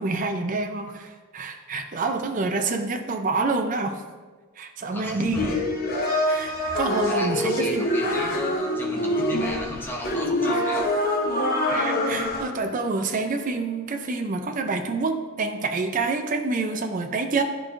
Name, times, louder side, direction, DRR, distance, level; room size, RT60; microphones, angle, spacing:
voice 1, 0.0-4.0 4.6-5.5 6.3-7.9 11.7-17.4, right 3 dB, 40° right, 5 dB, 0.4 m, -27 dB
voice 2, 4.9-5.6 7.1-10.9, left 1 dB, 10° left, -1 dB, 0.8 m, -35 dB
sound 1, 5.4-12.4, left 1 dB, 45° left, 0.9 m, -25 dB
10.5 x 4.5 x 2.5 m, 1.4 s
head